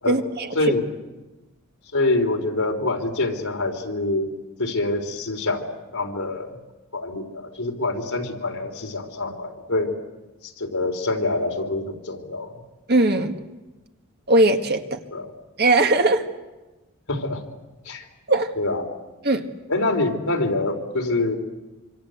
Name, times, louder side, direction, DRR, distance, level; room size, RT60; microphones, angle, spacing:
voice 1, 0.1-0.5 12.9-13.4 14.3-15.0 15.6-16.2 18.3-18.5 19.2-19.5, right 2 dB, 45° right, 5 dB, 1.7 m, -19 dB
voice 2, 1.9-4.3 4.6-6.6 6.9-9.9 10.4-12.5 15.1-15.3 17.1-17.4 17.9-18.1 18.6-18.9 19.7-21.4, left 2 dB, 75° left, 2 dB, 3.8 m, -25 dB
26.0 x 26.0 x 7.9 m, 1.1 s
head